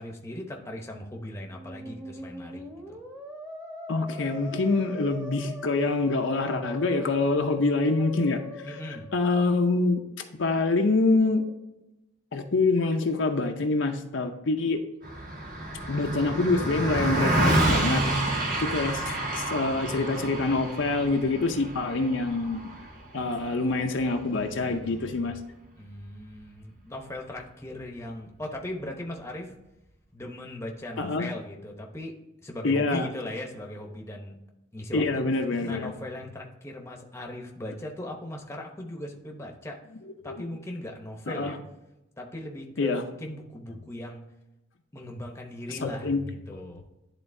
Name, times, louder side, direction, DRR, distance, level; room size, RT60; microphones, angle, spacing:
voice 1, 0.0-3.0 8.6-9.1 25.8-29.5 30.1-32.2 32.4-34.4 34.7-35.3 35.6-39.8 40.2-41.6 42.2-44.2 44.9-46.8, left 1 dB, 15° left, 1 dB, 0.8 m, -38 dB
Musical instrument, 1.4-9.5, left 1 dB, 15° right, 1.1 m, -40 dB
voice 2, 3.9-8.7 9.1-10.0 10.4-11.4 12.3-14.8 15.9-18.0 18.6-22.6 23.1-25.4 31.0-31.3 32.6-33.1 34.9-35.9 40.2-40.4 41.3-41.6 42.8-43.0 45.8-46.2, left 3 dB, 60° left, 4 dB, 0.6 m, -26 dB
Car passing by, 15.0-24.6, right 1 dB, 45° right, 1.3 m, -29 dB
11.0 x 3.9 x 2.7 m, 0.97 s
head